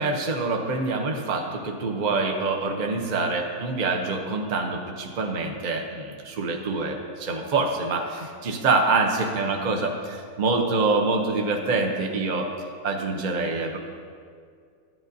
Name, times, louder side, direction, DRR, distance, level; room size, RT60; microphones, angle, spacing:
voice 1, 0.0-12.5 12.8-13.8, right 3 dB, 55° right, 1 dB, 0.5 m, -25 dB
12.0 x 9.2 x 2.6 m, 2.2 s
omnidirectional pair, 1.7 m